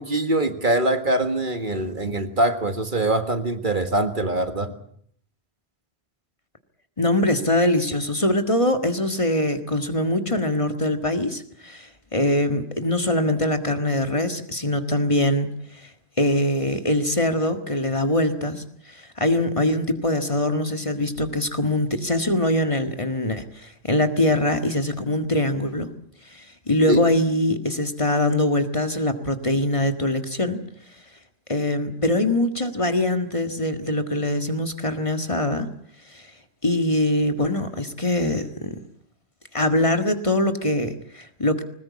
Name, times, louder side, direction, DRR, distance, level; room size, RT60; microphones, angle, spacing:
voice 1, 0.0-4.7 26.9-27.0, right 1 dB, 50° right, 8 dB, 1.9 m, -23 dB
voice 2, 7.0-15.9 16.2-25.9 26.3-30.6 31.5-35.7 36.1-36.3 36.6-38.7 39.5-41.6, left 1 dB, 30° left, 7 dB, 1.8 m, -23 dB
21.5 x 20.0 x 8.5 m, 0.65 s
omnidirectional pair, 1.1 m